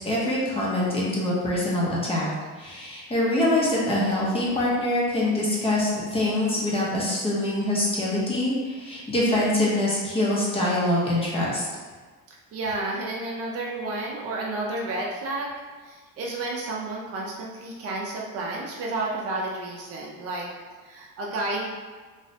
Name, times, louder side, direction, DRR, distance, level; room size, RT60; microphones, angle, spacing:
voice 1, 0.0-11.6, left 1 dB, 20° left, -6 dB, 0.6 m, -24 dB
voice 2, 12.3-15.5 15.8-20.5 20.8-21.7, right 2 dB, 45° right, -2 dB, 0.5 m, -31 dB
3.1 x 2.1 x 2.7 m, 1.4 s
cardioid pair, 140°, 32 cm